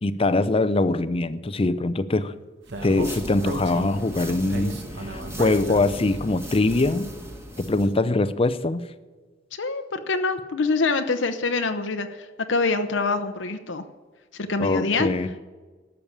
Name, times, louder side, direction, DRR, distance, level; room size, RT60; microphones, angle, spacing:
voice 1, 0.0-2.3 2.8-7.1 7.6-8.8 14.6-15.3, left 2 dB, 30° left, 0.6 m, -23 dB
sound 1, 2.6-7.9, equal, 15° right, 1.6 m, -37 dB
Speech, 2.7-6.1, right 2 dB, 65° right, 1.3 m, -35 dB
voice 2, 9.5-13.8 14.3-15.1, left 3 dB, 80° left, 0.8 m, -25 dB
12.0 x 7.0 x 8.6 m
head